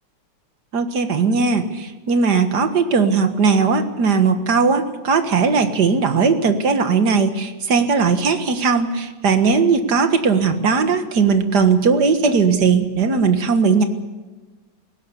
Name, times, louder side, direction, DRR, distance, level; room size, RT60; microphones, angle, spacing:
voice 1, 0.7-13.8, right 5 dB, 65° right, 8 dB, 2.1 m, -18 dB
19.0 x 17.0 x 8.4 m, 1.3 s
omnidirectional pair, 1.9 m